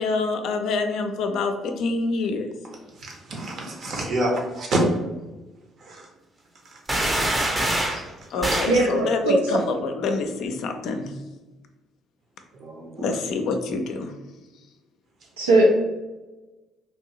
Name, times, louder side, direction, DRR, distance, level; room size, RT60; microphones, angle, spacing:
voice 1, 0.0-2.5 8.3-11.1 13.0-14.1, left 3 dB, 65° left, 5 dB, 0.4 m, -26 dB
voice 2, 3.0-4.8 5.8-6.1 6.7-6.8 12.6-13.2, right 1 dB, 55° right, 0 dB, 0.8 m, -28 dB
sound 1, 6.9-8.0 8.4-8.8, right 1 dB, 20° right, 0.6 m, -24 dB
voice 3, 8.7-9.3 15.4-15.8, right 1 dB, 85° right, -2 dB, 0.5 m, -19 dB
3.0 x 2.6 x 2.9 m, 1.1 s
hypercardioid pair, 50°, 0 cm